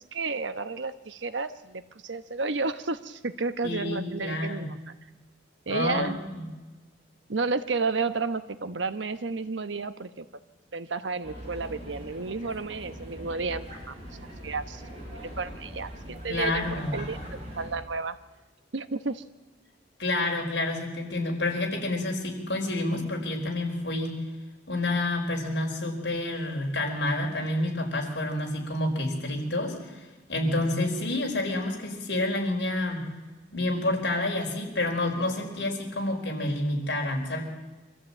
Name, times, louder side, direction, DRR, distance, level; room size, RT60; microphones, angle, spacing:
voice 1, 0.1-4.8 5.7-6.2 7.3-10.2 10.7-16.6 16.9-17.2 17.5-18.2 18.7-19.2, right 4 dB, 85° right, 11 dB, 1.1 m, -32 dB
voice 2, 3.6-4.6 5.7-6.4 16.3-17.0 20.0-24.2 24.7-33.0 33.5-37.4, left 2 dB, 65° left, 1 dB, 4.8 m, -29 dB
sound 1, 11.2-17.7, equal, 35° right, 7.5 m, -41 dB
24.5 x 14.0 x 8.8 m, 1.2 s
head